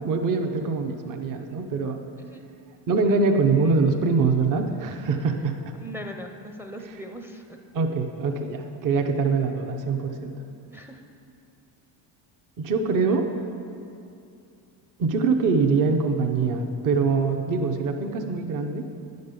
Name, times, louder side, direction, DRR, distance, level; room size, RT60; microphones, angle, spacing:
voice 1, 0.0-2.0 2.9-5.6 7.7-10.3 12.6-13.3 15.0-18.8, right 4 dB, 45° right, 4 dB, 0.8 m, -23 dB
voice 2, 5.8-7.6 10.7-11.0, equal, 5° right, 4 dB, 0.5 m, -39 dB
10.0 x 5.3 x 6.7 m, 2.6 s
cardioid pair, 125°, 46 cm